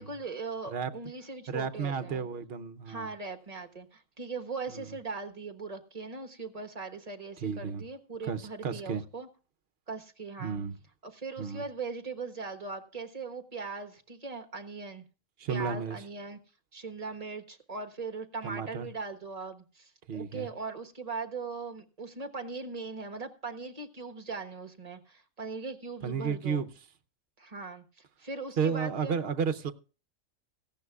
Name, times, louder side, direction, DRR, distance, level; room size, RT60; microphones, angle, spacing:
voice 1, 0.0-2.3 2.8-9.3 9.9-10.6 11.0-15.0 15.5-16.4 16.7-26.6 27.4-27.8 28.2-29.2, right 4 dB, 30° right, 1.3 m, -40 dB
voice 2, 1.5-3.1 4.7-5.0 7.4-7.8 8.3-9.0 10.4-10.7 11.4-11.6 15.4-16.0 18.4-18.9 20.1-20.5 26.0-26.7 28.6-29.7, right 6 dB, 55° right, 0.9 m, -32 dB
17.5 x 15.0 x 2.4 m
omnidirectional pair, 1.4 m